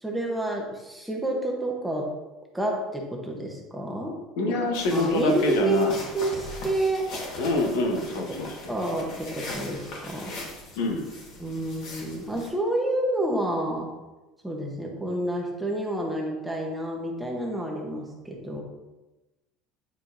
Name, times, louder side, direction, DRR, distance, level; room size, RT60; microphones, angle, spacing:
voice 1, 0.0-2.1 2.5-4.2 4.5-4.6 4.9-7.1 8.3-10.3 11.4-13.9 14.4-18.6, right 1 dB, 5° right, -1 dB, 0.9 m, -29 dB
voice 2, 4.4-5.9 7.4-8.5 10.8-11.1, left 2 dB, 85° left, 2 dB, 1.1 m, -25 dB
sound 1, 4.7-12.5, left 2 dB, 50° left, 1.4 m, -40 dB
8.8 x 4.3 x 2.6 m, 1.1 s
cardioid pair, 165°, 0 cm